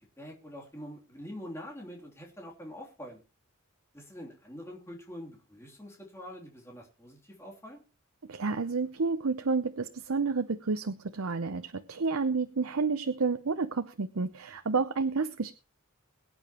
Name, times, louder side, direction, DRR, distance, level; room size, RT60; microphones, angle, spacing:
voice 1, 0.0-3.2 3.9-7.8 14.5-14.6, equal, 10° left, -1 dB, 3.1 m, -45 dB
voice 2, 8.3-15.5, right 4 dB, 75° right, 10 dB, 0.7 m, -30 dB
22.5 x 8.9 x 3.0 m, 0.32 s
head